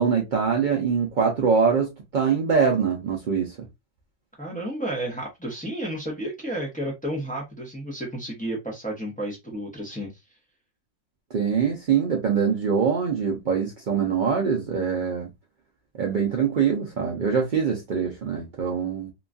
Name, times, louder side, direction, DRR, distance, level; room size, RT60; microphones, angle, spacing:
voice 1, 0.0-3.7 11.3-15.3 15.9-19.1, right 6 dB, 85° right, 0.4 m, -23 dB
voice 2, 4.4-10.1, right 1 dB, 10° left, 0.5 m, -32 dB
2.9 x 2.3 x 2.4 m
omnidirectional pair, 1.5 m